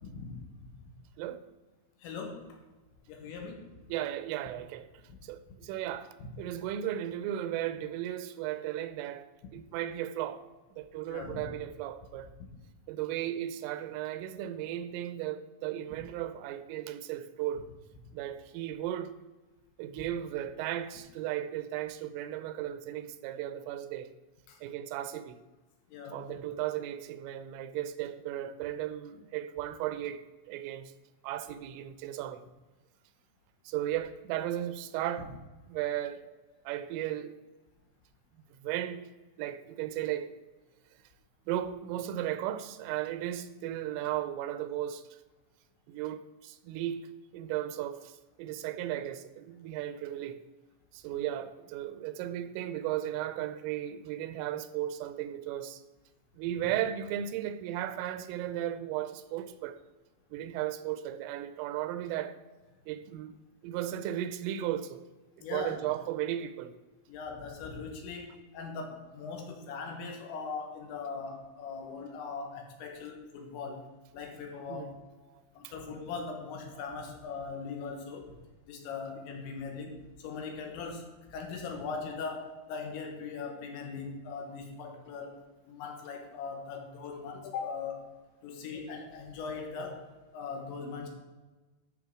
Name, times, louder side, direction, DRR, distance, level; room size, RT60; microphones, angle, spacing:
voice 1, 0.0-0.4 2.0-2.6 3.1-3.6 5.1-5.2 11.1-11.4 24.5-24.6 25.9-26.4 51.1-51.3 65.4-65.8 67.1-73.9 74.1-75.0 75.6-78.3 78.7-88.1 88.4-90.0 90.3-91.1, left 5 dB, 70° left, 3.5 m, -40 dB
voice 2, 3.9-4.9 5.2-9.3 9.5-10.4 10.8-12.3 12.9-17.6 18.1-19.1 19.8-24.1 24.6-25.4 26.1-30.9 31.2-32.4 33.7-35.3 35.7-36.3 36.7-37.3 38.6-39.1 39.4-40.3 41.5-45.0 45.9-50.4 50.9-55.8 56.4-59.8 60.3-62.4 62.9-63.4 63.6-65.1 65.4-66.7 74.7-74.9 75.3-75.7, right 12 dB, 85° right, 3.1 m, -35 dB
13.0 x 6.4 x 4.7 m
omnidirectional pair, 5.8 m